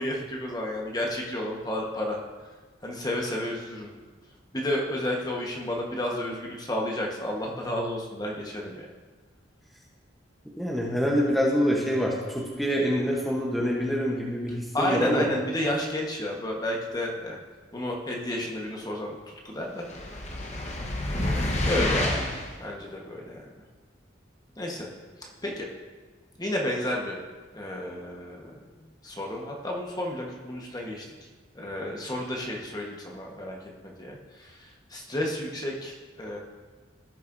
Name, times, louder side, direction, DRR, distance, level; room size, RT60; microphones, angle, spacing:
voice 1, 0.0-2.2 2.8-3.9 4.5-8.9 14.7-17.4 17.7-19.2 19.4-19.9 21.6-22.3 22.6-23.5 24.6-24.9 25.4-25.7 26.4-27.2 27.5-31.0 31.5-33.6 33.8-36.4, left 1 dB, 20° left, -1 dB, 1.2 m, -31 dB
voice 2, 10.6-15.2, equal, ahead, -4 dB, 1.0 m, -26 dB
sound 1, 19.9-22.5, left 1 dB, 40° left, 1.1 m, -28 dB
16.5 x 6.6 x 2.7 m, 1.4 s
head